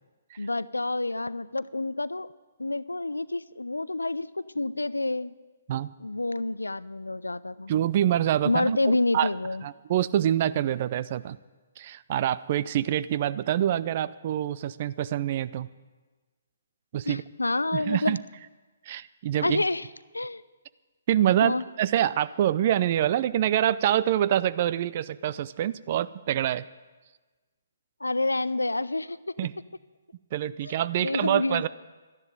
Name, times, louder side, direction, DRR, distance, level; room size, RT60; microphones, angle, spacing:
voice 1, 0.4-2.3 2.6-5.3 6.0-7.7 8.4-9.6 17.1-18.2 19.4-19.9 20.1-20.4 21.4-21.7 28.0-29.2 30.6-30.7 31.0-31.7, left 2 dB, 85° left, 18 dB, 0.5 m, -28 dB
voice 2, 7.7-8.8 9.1-9.3 9.6-11.4 11.8-15.7 16.9-17.2 17.7-18.2 18.9-19.6 21.1-26.6 29.4-29.5 30.3-31.7, right 11 dB, 40° right, 17 dB, 0.5 m, -26 dB
12.5 x 10.5 x 9.2 m, 1.3 s
figure-of-eight pair, 130°, 0 cm